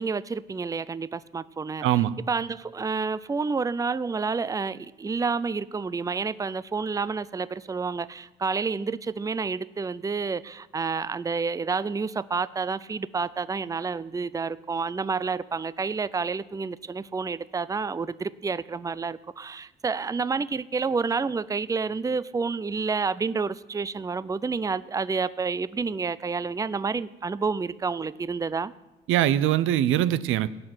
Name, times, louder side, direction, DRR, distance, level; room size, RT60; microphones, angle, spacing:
voice 1, 0.0-28.7, right 4 dB, 15° right, 0.5 m, -29 dB
voice 2, 1.8-2.1 29.1-30.5, right 12 dB, 85° right, 0.7 m, -22 dB
18.0 x 6.5 x 9.6 m
cardioid pair, 90°, 20 cm